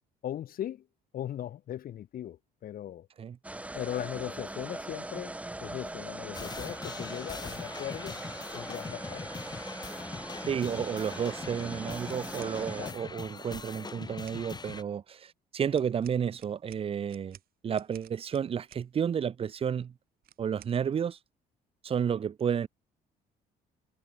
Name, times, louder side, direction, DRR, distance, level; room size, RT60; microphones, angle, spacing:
voice 1, 0.2-0.8 1.1-3.1 3.7-5.3 5.6-8.2 8.5-9.3 12.8-13.0, left 11 dB, 60° left, 3.0 m, -38 dB
sound 1, 3.4-12.9, right 1 dB, 10° right, 1.4 m, -41 dB
sound 2, 6.3-14.8, left 4 dB, 25° left, 2.9 m, -42 dB
voice 2, 10.4-17.4 17.6-19.9 20.4-21.2 21.8-22.7, right 8 dB, 35° right, 0.7 m, -31 dB
sound 3, 12.0-12.6 13.8-14.4 15.7-18.9 20.2-20.8, right 12 dB, 60° right, 2.5 m, -56 dB
cardioid pair, 110°, 17 cm